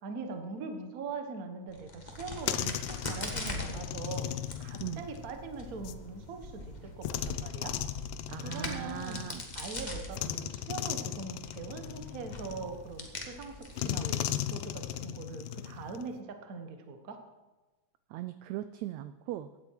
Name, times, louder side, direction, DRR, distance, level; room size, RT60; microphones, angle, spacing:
voice 1, 0.0-4.3 4.6-7.8 8.3-9.2 9.5-14.2 14.5-17.2, right 4 dB, 50° right, 6 dB, 1.0 m, -42 dB
Crack, 1.7-14.9, left 2 dB, 45° left, 0.5 m, -43 dB
sound 1, 2.1-6.0 7.0-9.7 10.1-13.1 13.8-16.2, left 12 dB, 80° left, 2.2 m, -37 dB
Thunder, 3.7-15.0, left 2 dB, 25° left, 4.5 m, -58 dB
voice 2, 8.3-9.5 18.1-19.5, right 14 dB, 80° right, 12 dB, 1.6 m, -39 dB
16.0 x 11.0 x 4.7 m, 1.2 s
omnidirectional pair, 3.7 m